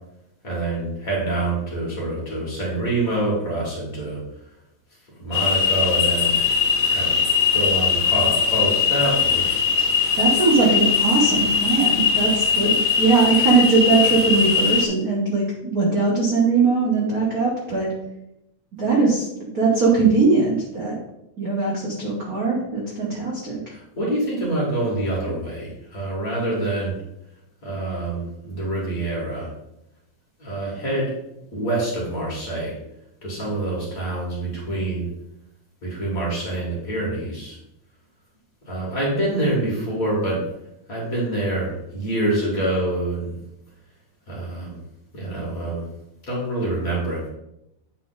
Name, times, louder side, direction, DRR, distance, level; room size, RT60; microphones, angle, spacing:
voice 1, 0.4-4.2 5.2-6.4 6.9-7.1 7.5-9.5 23.7-26.9 27.6-29.5 30.4-31.1 31.5-32.8 33.2-35.1 35.8-37.6 38.7-40.4 40.9-43.4 44.3-44.8 45.1-45.8 46.3-47.3, right 2 dB, 35° left, -5 dB, 2.0 m, -26 dB
sound 1, 5.3-14.9, left 6 dB, 80° left, 0.7 m, -20 dB
voice 2, 10.2-17.9 18.8-21.0 21.4-23.6, right 4 dB, 60° right, -3 dB, 0.9 m, -20 dB
8.3 x 3.9 x 3.9 m, 0.85 s
omnidirectional pair, 3.3 m